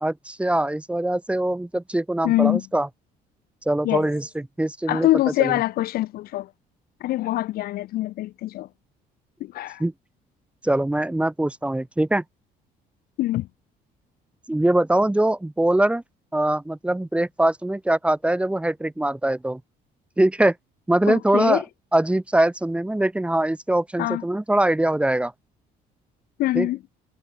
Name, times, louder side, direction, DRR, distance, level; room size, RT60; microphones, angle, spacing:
voice 1, 0.0-2.9 3.7-5.1 5.4-5.5 9.8-9.9 10.6-12.2 14.5-16.0 16.3-19.6 20.2-20.5 20.9-21.6 21.9-25.3 26.5-26.7, right 1 dB, 5° right, 1.1 m, -22 dB
voice 2, 2.2-2.6 3.8-4.1 4.9-6.5 7.0-8.7 9.4-9.8 13.2-13.5 21.1-21.6 24.0-24.2 26.4-26.8, left 16 dB, 65° left, 0.4 m, -24 dB
cardioid pair, 110°, 17 cm